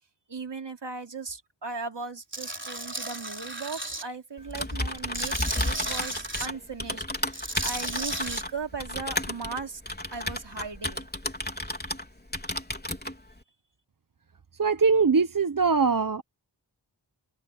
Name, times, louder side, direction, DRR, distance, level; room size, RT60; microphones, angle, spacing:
voice 1, 0.3-9.8 10.1-11.1, right 4 dB, 70° right, 3.1 m, -38 dB
Tools, 2.3-4.0 4.5-6.5 7.2-8.4, right 1 dB, 25° right, 3.8 m, -34 dB
Typing, 4.4-12.1 12.3-13.1, left 1 dB, 20° left, 4.0 m, -32 dB
voice 2, 14.6-16.2, right 5 dB, 50° right, 1.1 m, -22 dB
wide cardioid pair, 45°, 43 cm